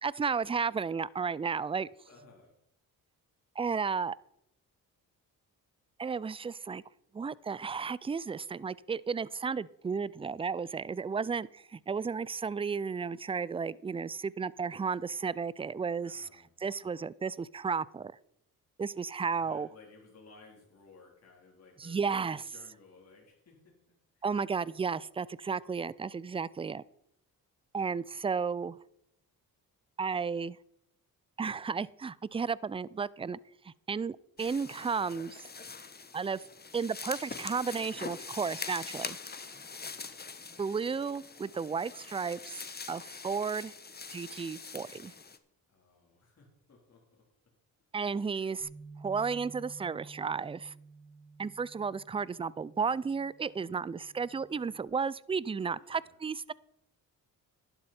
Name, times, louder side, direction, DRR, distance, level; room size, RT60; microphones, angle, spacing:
voice 1, 0.0-1.9 3.6-4.2 6.0-6.8 7.1-16.3 16.6-18.1 18.8-19.7 21.8-22.4 24.2-26.8 27.7-28.8 30.0-30.6 31.4-33.4 33.6-35.5 36.1-36.4 36.7-39.2 40.6-42.6 42.9-43.7 44.1-45.1 47.9-48.7 49.0-50.7 51.4-56.5, right 5 dB, 15° right, 22 dB, 0.4 m, -33 dB
voice 2, 2.1-2.5 16.0-16.5 19.4-23.7 24.1-24.3 39.5-39.7 40.5-40.9 45.7-47.2 48.0-48.6 55.8-56.2, left 4 dB, 45° left, -2 dB, 3.9 m, -58 dB
sound 1, 34.4-45.4, left 4 dB, 25° left, 1.2 m, -44 dB
Bass guitar, 48.6-54.9, right 4 dB, 65° right, 3.1 m, -53 dB
12.0 x 10.5 x 4.4 m, 0.78 s
cardioid pair, 70°, 35 cm